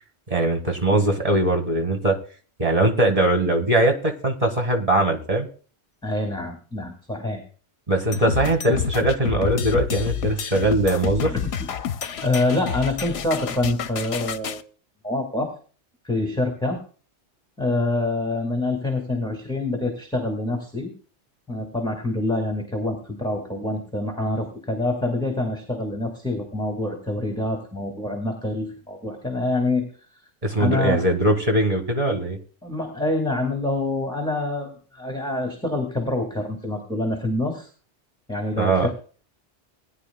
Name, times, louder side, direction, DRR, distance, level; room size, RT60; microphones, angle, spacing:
voice 1, 0.3-2.2 2.6-5.5 7.9-11.3 30.4-32.4 38.6-38.9, right 1 dB, 30° right, 4 dB, 1.7 m, -21 dB
voice 2, 6.0-7.4 8.4-8.5 11.2-11.7 12.2-14.6 15.0-15.5 16.0-16.8 17.6-20.9 21.5-29.9 30.6-31.0 32.6-37.7 38.3-38.9, left 2 dB, 5° left, 3 dB, 1.8 m, -26 dB
sound 1, 8.1-14.6, left 8 dB, 70° left, 0.9 m, -29 dB
19.0 x 9.9 x 2.2 m, 0.39 s
omnidirectional pair, 1.2 m